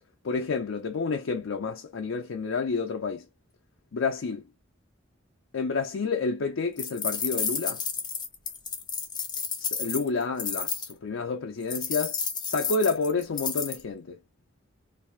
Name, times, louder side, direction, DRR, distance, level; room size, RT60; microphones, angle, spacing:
voice 1, 0.2-3.3 3.9-4.4 5.5-7.8 9.6-12.2 12.5-14.2, left 4 dB, 90° left, 0.5 m, -29 dB
sound 1, 6.8-10.9 11.7-13.8, left 6 dB, 25° left, 0.5 m, -31 dB
2.6 x 2.4 x 3.1 m
head